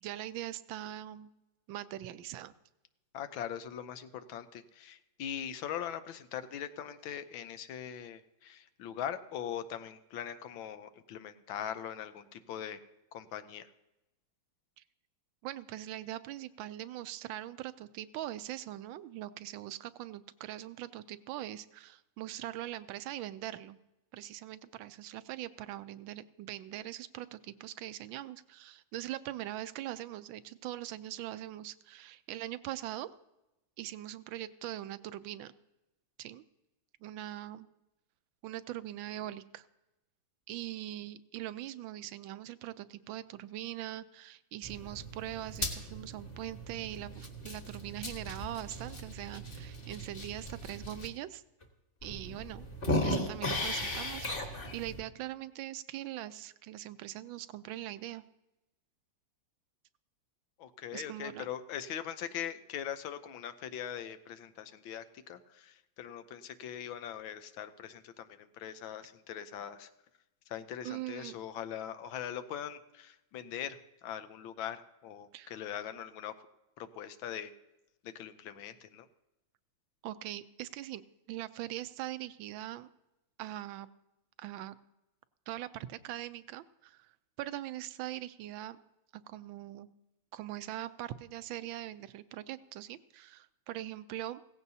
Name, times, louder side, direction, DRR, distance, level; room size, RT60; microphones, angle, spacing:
voice 1, 0.0-1.3 1.7-2.5 14.8-14.9 15.4-23.8 24.1-33.1 33.8-35.5 36.2-36.4 37.0-37.7 38.4-39.7 40.5-51.4 52.0-52.7 53.0-58.2 60.9-61.5 70.8-71.4 75.3-75.5 80.0-82.9 83.4-83.9 84.4-84.8 85.5-87.1 87.4-88.8 89.1-89.9 90.3-94.4, right 13 dB, 85° right, 14 dB, 1.4 m, -42 dB
voice 2, 3.1-12.8 13.1-13.7 60.6-69.9 70.5-76.3 76.8-77.5 78.0-79.1, left 9 dB, 90° left, 11 dB, 1.5 m, -41 dB
sound 1, 44.6-51.1 51.6-51.7 52.0-55.0, left 1 dB, 30° left, 1.5 m, -37 dB
17.0 x 15.0 x 2.8 m, 0.94 s
omnidirectional pair, 2.1 m